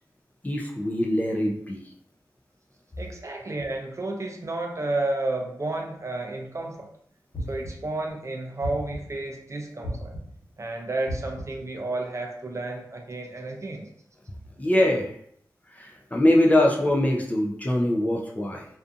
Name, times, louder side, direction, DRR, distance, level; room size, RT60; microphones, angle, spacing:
voice 1, 0.4-1.8 14.6-15.1 15.7-18.7, left 1 dB, 20° left, 0 dB, 0.4 m, -23 dB
voice 2, 3.0-6.9 7.5-10.1 10.6-13.9, right 2 dB, 40° right, 1 dB, 0.5 m, -31 dB
sound 1, 7.3-8.0 8.6-9.3 9.8-10.5 11.1-11.7, equal, 55° left, 1.2 m, -35 dB
2.5 x 2.5 x 2.4 m, 0.67 s
wide cardioid pair, 90°, 8 cm